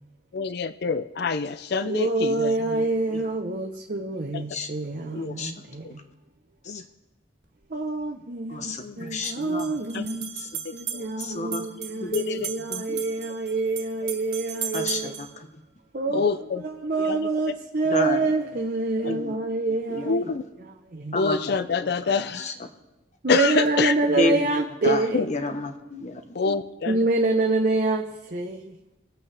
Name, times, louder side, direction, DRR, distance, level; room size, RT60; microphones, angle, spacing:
voice 1, 0.3-2.5 5.1-5.3 6.7-6.8 8.8-9.1 9.9-10.1 10.9-11.0 12.1-12.5 16.1-16.6 17.1-17.2 19.1-19.2 20.0-20.4 21.2-22.5 23.3-23.9 25.1-25.3 26.3-27.0, left 5 dB, 60° left, 12 dB, 0.5 m, -26 dB
voice 2, 1.8-6.0 7.7-10.3 10.7-15.2 15.9-21.2 23.2-25.3 26.9-28.8, right 3 dB, 50° right, 1 dB, 0.8 m, -26 dB
voice 3, 5.1-5.5 6.6-6.8 8.5-10.1 10.4-10.5 11.2-11.6 12.0-12.2 12.7-13.0 14.7-15.5 17.9-18.3 19.0-19.3 19.9-20.1 21.1-21.6 21.8-22.7 24.1-24.5 24.8-26.6, left 2 dB, 40° left, 6 dB, 1.1 m, -31 dB
sound 1, 7.4-7.5 9.1-15.3, right 8 dB, 65° right, 1.7 m, -36 dB
22.5 x 8.3 x 3.4 m, 1.0 s
head